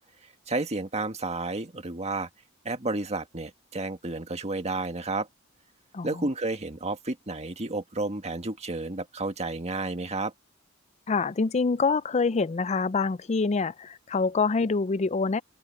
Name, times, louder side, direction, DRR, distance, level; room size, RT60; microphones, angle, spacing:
voice 1, 0.5-2.3 2.7-5.3 6.0-10.3, right 2 dB, 30° right, 1.8 m, -31 dB
voice 2, 5.9-6.3 11.1-15.4, left 4 dB, 30° left, 0.5 m, -26 dB
open air
head